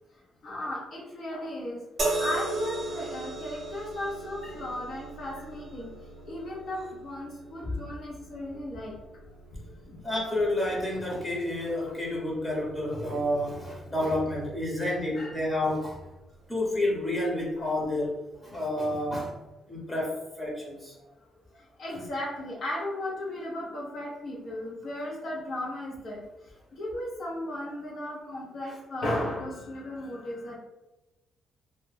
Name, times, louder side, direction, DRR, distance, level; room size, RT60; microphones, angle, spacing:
voice 1, 0.4-1.8 2.2-5.9 6.2-8.9 9.5-10.0 15.1-15.4 17.6-17.7 19.7-19.8 21.6-26.2 26.7-30.6, left 1 dB, 60° left, -4 dB, 0.7 m, -35 dB
sound 1, 2.0-15.3 16.3-16.5, right 2 dB, 50° right, 0.7 m, -38 dB
voice 2, 10.0-16.0 16.5-18.1 18.4-19.4 19.7-20.9, left 1 dB, 20° left, -3 dB, 0.8 m, -29 dB
2.2 x 2.1 x 3.2 m, 1.0 s
cardioid pair, 90°, 0 cm